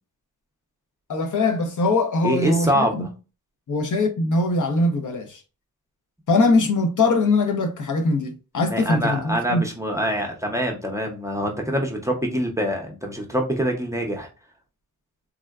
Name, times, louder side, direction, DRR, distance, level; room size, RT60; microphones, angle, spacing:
voice 1, 1.1-3.1 3.7-5.4 6.3-9.6, left 2 dB, 55° left, 0.7 m, -21 dB
voice 2, 2.2-3.1 8.7-14.3, equal, 10° right, 0.6 m, -25 dB
3.5 x 2.1 x 2.3 m
wide cardioid pair, 110°, 36 cm